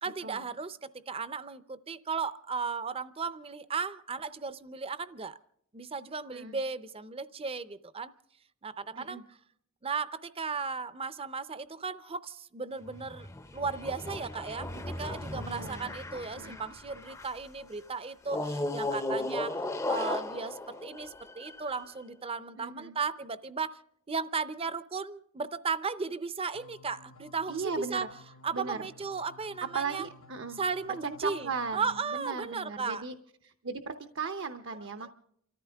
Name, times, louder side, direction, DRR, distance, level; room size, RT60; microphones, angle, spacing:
voice 1, 0.0-5.4 5.7-8.1 8.6-9.4 9.8-13.3 13.5-23.8 24.1-28.1 28.4-30.1 30.5-33.0 35.0-35.1, right 5 dB, 25° right, 14 dB, 0.6 m, -36 dB
sound 1, 12.8-17.5 18.3-21.9, left 2 dB, 15° left, 0.6 m, -36 dB
voice 2, 15.3-15.9 16.4-16.6 22.6-22.9 27.5-28.1 28.5-28.8 29.7-30.6 31.2-33.1 33.4-35.1, right 5 dB, 60° right, 8 dB, 0.8 m, -37 dB
sound 2, 26.5-32.0, left 2 dB, 70° left, 0.7 m, -55 dB
29.0 x 14.0 x 3.4 m, 0.70 s
head